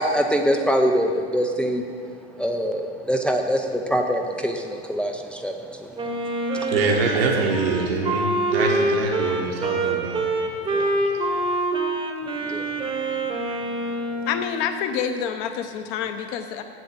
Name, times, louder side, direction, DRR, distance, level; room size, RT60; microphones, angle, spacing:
voice 1, 0.0-1.8 2.4-5.5 10.7-10.8 12.5-12.6, equal, 5° left, 2 dB, 0.6 m, -23 dB
Wind instrument woodwind instrument, 6.0-14.4, right 2 dB, 15° right, 1.1 m, -25 dB
voice 2, 6.5-10.3 10.8-11.4, right 4 dB, 60° right, 0 dB, 1.5 m, -25 dB
voice 3, 14.2-16.6, left 8 dB, 40° left, 7 dB, 1.0 m, -27 dB
8.0 x 7.6 x 7.6 m, 2.2 s
figure-of-eight pair, 95°, 33 cm